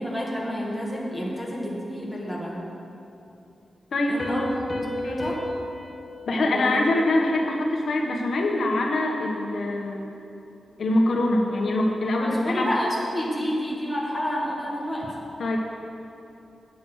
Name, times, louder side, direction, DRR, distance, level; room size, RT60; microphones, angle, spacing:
voice 1, 0.0-2.6 4.1-4.4 5.0-5.5 6.4-6.8 12.2-15.1, equal, ahead, -4 dB, 2.0 m, -29 dB
voice 2, 3.9-4.5 5.0-5.3 6.3-10.1 10.8-12.7 15.4-15.6, left 2 dB, 70° left, 0 dB, 1.2 m, -24 dB
Piano, 4.2-7.6, left 1 dB, 25° left, 1.2 m, -35 dB
9.3 x 7.9 x 6.3 m, 2.8 s
wide cardioid pair, 135°, 0 cm